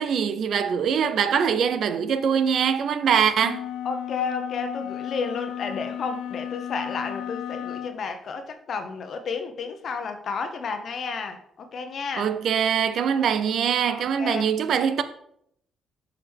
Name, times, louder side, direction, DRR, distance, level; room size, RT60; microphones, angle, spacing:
voice 1, 0.0-3.6 12.2-15.0, right 7 dB, 65° right, 0.6 m, -23 dB
sound 1, 3.4-8.0, left 10 dB, 85° left, 0.4 m, -34 dB
voice 2, 3.8-12.3 13.9-14.5, left 5 dB, 60° left, 0.9 m, -32 dB
7.8 x 5.0 x 3.5 m
cardioid pair, 90°, 0 cm